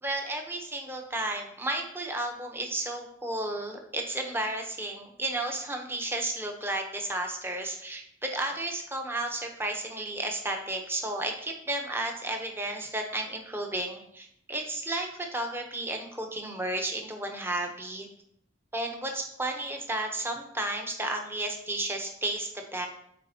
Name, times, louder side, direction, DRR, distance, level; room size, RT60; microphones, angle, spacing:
voice 1, 0.0-18.1 18.7-22.9, right 1 dB, 10° right, 3 dB, 0.7 m, -33 dB
8.4 x 4.2 x 2.8 m, 0.70 s
head